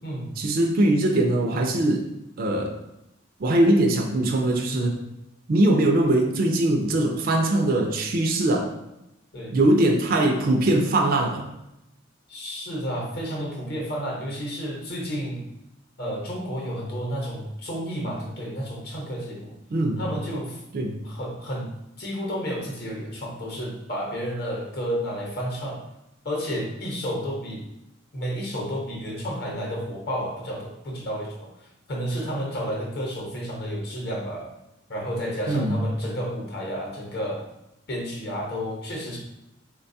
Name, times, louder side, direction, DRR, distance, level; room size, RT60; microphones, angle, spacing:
voice 1, 0.4-2.1 2.4-2.8 3.4-5.0 5.5-8.7 9.5-11.5 19.7-20.0 20.7-21.0 35.5-35.8, right 1 dB, 45° right, 2 dB, 0.3 m, -21 dB
voice 2, 12.3-15.4 16.0-19.5 20.0-20.6 21.0-21.7 22.0-25.8 26.2-27.6 28.1-34.5 34.9-37.4 37.9-39.2, equal, 50° left, -2 dB, 0.8 m, -31 dB
3.9 x 2.2 x 2.6 m, 0.87 s
head